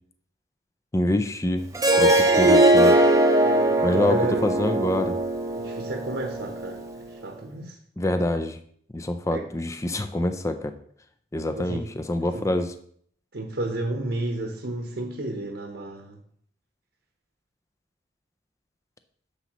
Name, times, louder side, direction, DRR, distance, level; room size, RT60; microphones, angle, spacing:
voice 1, 0.9-1.7 2.0-2.9 3.8-5.1 8.0-8.6 8.9-10.7 11.3-12.7, left 1 dB, 15° left, 8 dB, 0.4 m, -26 dB
Harp, 1.7-6.9, right 1 dB, 15° right, 0.7 m, -20 dB
voice 2, 3.4-4.5 5.5-7.8 9.3-9.5 11.5-11.9 12.3-12.5 13.3-16.2, right 1 dB, 65° right, 1 dB, 1.0 m, -32 dB
9.9 x 7.0 x 3.0 m, 0.62 s
head